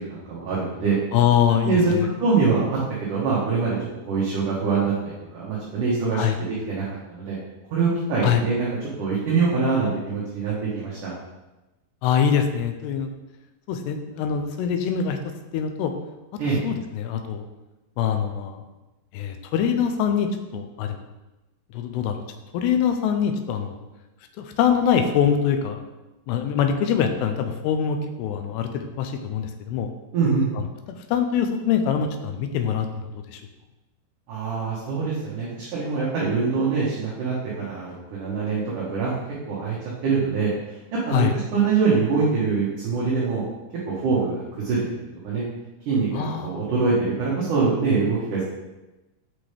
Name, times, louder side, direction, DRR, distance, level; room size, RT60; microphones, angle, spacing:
voice 1, 0.0-1.0 1.6-1.9 2.2-3.8 4.1-7.4 7.7-8.7 9.0-11.1 16.4-16.6 30.1-30.5 34.3-39.2 39.5-39.8 40.0-41.3 41.5-43.4 43.8-44.9 45.2-45.4 45.9-48.4, right 4 dB, 60° right, -7 dB, 2.4 m, -24 dB
voice 2, 1.1-2.1 6.1-6.4 8.2-8.4 12.0-13.1 13.7-15.2 15.5-15.9 16.3-17.5 18.0-18.6 19.1-21.0 21.7-22.2 22.5-23.8 24.4-25.8 26.3-29.9 30.9-33.4 41.1-41.3 46.1-46.6, left 8 dB, 90° left, 6 dB, 2.7 m, -24 dB
7.4 x 6.1 x 3.3 m, 1.0 s
omnidirectional pair, 4.8 m